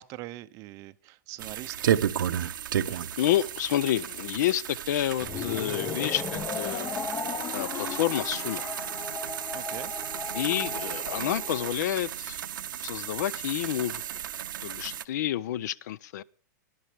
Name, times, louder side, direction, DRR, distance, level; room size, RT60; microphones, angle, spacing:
voice 1, 0.0-2.0 9.5-9.9, right 17 dB, 30° right, 0.6 m, -42 dB
sound 1, 1.4-15.0, right 10 dB, 85° right, 0.8 m, -33 dB
voice 2, 2.9-6.9 7.5-8.7 10.3-12.4 12.8-14.0 14.6-16.2, left 12 dB, 60° left, 0.6 m, -29 dB
sound 2, 5.2-11.7, left 6 dB, 20° left, 0.6 m, -36 dB
19.5 x 11.0 x 3.4 m
hypercardioid pair, 150°, 11 cm